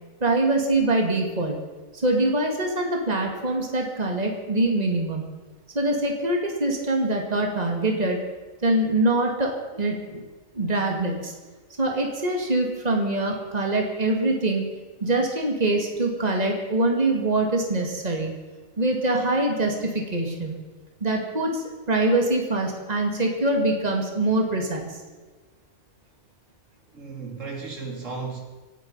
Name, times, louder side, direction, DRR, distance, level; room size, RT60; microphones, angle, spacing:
voice 1, 0.2-1.6 1.9-5.2 5.7-8.2 8.6-10.2 10.5-11.3 11.8-14.6 15.0-18.3 18.8-20.5 21.0-25.0, right 2 dB, 30° right, 2 dB, 2.5 m, -24 dB
voice 2, 26.9-28.4, right 4 dB, 65° right, 2 dB, 2.8 m, -34 dB
26.5 x 9.2 x 5.6 m, 1.3 s
omnidirectional pair, 1.4 m